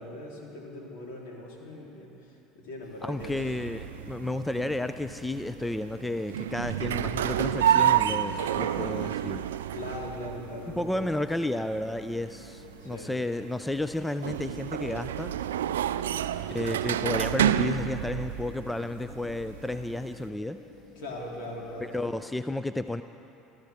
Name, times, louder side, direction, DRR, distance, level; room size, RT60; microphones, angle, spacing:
voice 1, 0.0-3.4 9.7-11.1 12.8-13.2 20.9-22.1, left 1 dB, 65° left, -2 dB, 3.5 m, -40 dB
sound 1, 2.8-22.1, left 2 dB, 50° left, 5.0 m, -51 dB
voice 2, 3.0-9.5 10.8-15.3 16.5-20.6 21.9-23.0, left 1 dB, 5° left, 11 dB, 0.5 m, -32 dB
sound 2, 3.2-20.3, right 10 dB, 80° right, 0.4 m, -30 dB
28.0 x 14.0 x 3.6 m, 2.8 s
hypercardioid pair, 70°, 0 cm